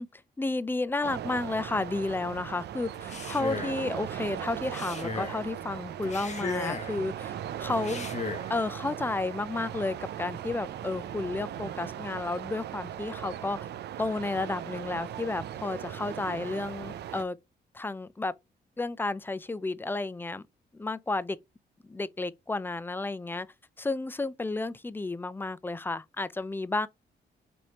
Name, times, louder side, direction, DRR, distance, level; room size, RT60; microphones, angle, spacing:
voice 1, 0.0-8.1 8.5-13.6 14.0-17.4 17.7-18.3 18.8-20.4 20.7-21.4 21.9-23.5 23.8-26.9, left 2 dB, 10° left, 0.3 m, -32 dB
sound 1, 1.0-17.2, right 10 dB, 75° right, 0.4 m, -38 dB
Male speech man speaking, 2.9-3.8 4.6-5.4 6.0-7.0 7.7-8.5, left 4 dB, 40° left, 0.9 m, -36 dB
4.2 x 3.3 x 2.8 m
cardioid pair, 95°, 18 cm